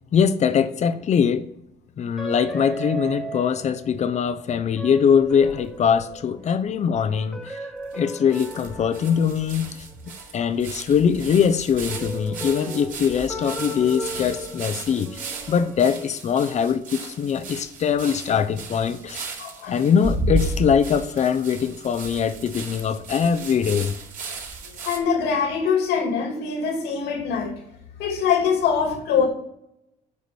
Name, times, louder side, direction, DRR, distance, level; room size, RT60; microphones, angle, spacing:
voice 1, 0.1-1.5 2.0-7.6 7.9-9.8 10.3-15.2 15.5-19.3 19.7-23.9, left 7 dB, 45° left, 0.7 m, -22 dB
sound 1, 2.2-4.2 4.8-6.5 7.1-10.6 11.9-15.9, right 1 dB, ahead, 1.2 m, -37 dB
sound 2, 5.2-6.1 6.7-6.8 6.9-7.0 7.9-8.0 8.3-25.0, right 3 dB, 55° right, 3.7 m, -34 dB
voice 2, 19.4-19.7 24.8-27.5 28.0-29.3, left 6 dB, 85° left, 2.3 m, -23 dB
8.3 x 4.9 x 6.9 m
cardioid pair, 110°, 17 cm